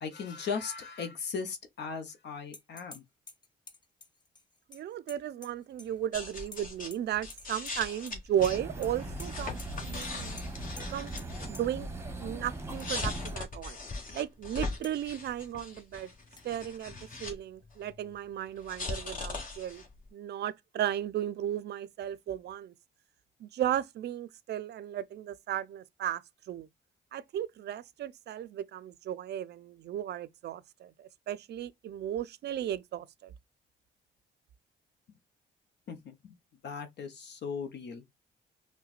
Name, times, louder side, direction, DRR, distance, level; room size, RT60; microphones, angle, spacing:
voice 1, 0.0-3.0 35.9-36.4 36.6-38.0, left 5 dB, 60° left, 0.8 m, -38 dB
sound 1, 2.5-3.0 3.3-5.9 6.1-7.0 7.3-8.2 8.4-8.9 9.2-9.3 9.6-9.7 10.0-10.1 10.4-10.5 10.8-10.9 11.2-11.3 11.5-11.6 12.5-12.9 13.3-13.4 13.9-14.0 14.8-14.9 16.4-16.5, left 3 dB, 20° left, 0.6 m, -50 dB
voice 2, 4.7-10.4 10.9-11.1 11.4-11.9 12.2-13.8 14.1-16.1 16.4-19.8 20.1-22.7 23.4-26.2 26.5-26.7 27.1-33.3, right 11 dB, 60° right, 0.4 m, -35 dB
sound 2, 6.1-6.9 7.2-11.7 12.6-17.4 17.6-20.0, left 3 dB, 45° left, 1.4 m, -40 dB
sound 3, 8.4-13.4, right 1 dB, 15° right, 0.9 m, -40 dB
5.6 x 2.2 x 2.4 m
cardioid pair, 90°, 20 cm